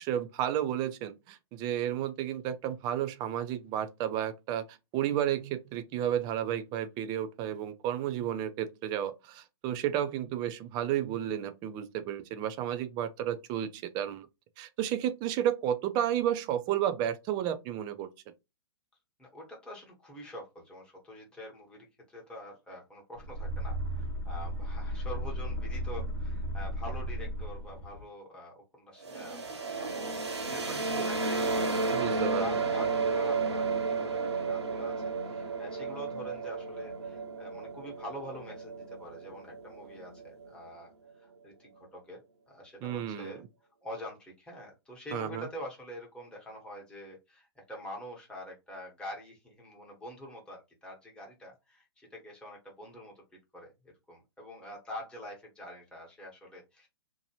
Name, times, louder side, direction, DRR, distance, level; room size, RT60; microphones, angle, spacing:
voice 1, 0.0-4.6 4.9-14.3 14.6-18.1 31.9-32.4 42.8-43.4 45.1-45.5, right 10 dB, 30° right, 0.4 m, -32 dB
voice 2, 19.2-29.4 29.7-40.9 41.2-42.2 42.5-43.5 43.8-53.1 53.5-53.7 54.1-56.9, equal, 5° left, 1.1 m, -45 dB
sound 1, 23.2-28.1, equal, 65° left, 1.2 m, -35 dB
sound 2, 29.0-40.7, right 4 dB, 90° right, 0.8 m, -33 dB
2.8 x 2.2 x 2.8 m
hypercardioid pair, 120°, 14 cm